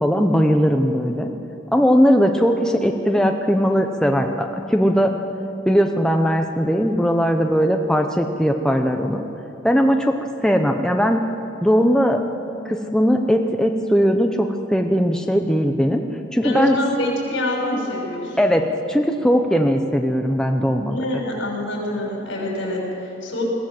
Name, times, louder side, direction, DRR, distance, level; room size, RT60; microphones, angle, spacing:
voice 1, 0.0-1.3 1.7-5.1 5.6-9.2 9.6-10.1 10.4-11.2 11.6-12.2 12.6-16.0 16.3-16.8 18.4-21.0, equal, 5° left, 3 dB, 0.8 m, -19 dB
voice 2, 16.4-18.5 20.9-23.4, left 1 dB, 80° left, -1 dB, 6.0 m, -25 dB
21.5 x 15.5 x 7.7 m, 2.9 s
head